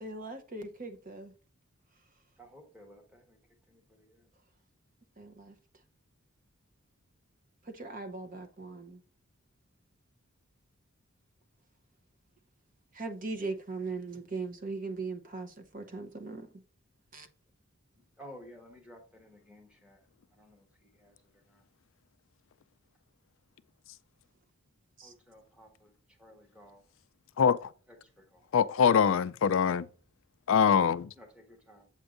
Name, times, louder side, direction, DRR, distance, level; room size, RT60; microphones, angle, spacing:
voice 1, 0.0-1.3 5.2-5.6 7.6-9.0 12.9-16.5 17.1-17.3 25.0-25.1, right 3 dB, 40° right, 0.7 m, -39 dB
voice 2, 2.4-3.4 3.7-4.3 18.2-20.0 20.4-21.2 21.5-21.6 25.0-25.9 26.2-26.8 27.9-28.5 31.1-31.9, equal, 5° right, 1.0 m, -54 dB
voice 3, 27.4-27.7 28.5-29.9 30.5-31.1, left 7 dB, 65° left, 0.4 m, -24 dB
7.9 x 2.6 x 4.9 m
head